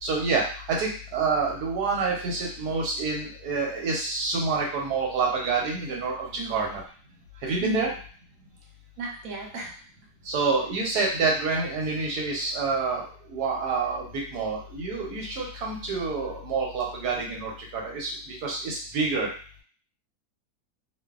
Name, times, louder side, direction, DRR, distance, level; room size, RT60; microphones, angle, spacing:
voice 1, 0.0-6.8 7.4-7.9 10.2-19.3, right 4 dB, 85° right, -1 dB, 1.3 m, -28 dB
voice 2, 6.4-6.8 7.6-7.9 9.0-9.7, right 3 dB, 65° right, -1 dB, 1.1 m, -35 dB
2.6 x 2.5 x 2.3 m, 0.43 s
omnidirectional pair, 1.7 m